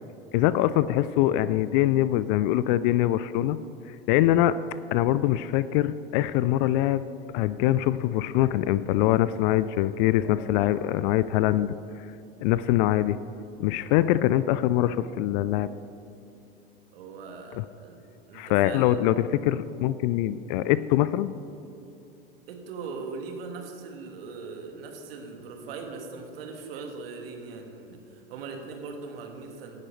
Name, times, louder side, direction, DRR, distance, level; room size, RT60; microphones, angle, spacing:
voice 1, 0.3-3.6 3.9-4.6 4.9-11.7 12.4-13.2 13.6-15.7 17.6-17.7 18.3-21.3, left 13 dB, 50° left, 16 dB, 0.5 m, -23 dB
voice 2, 16.9-18.0 18.3-19.0 22.5-29.8, right 4 dB, 70° right, 3 dB, 1.9 m, -40 dB
18.0 x 10.5 x 3.3 m, 2.8 s
hypercardioid pair, 80°, 30 cm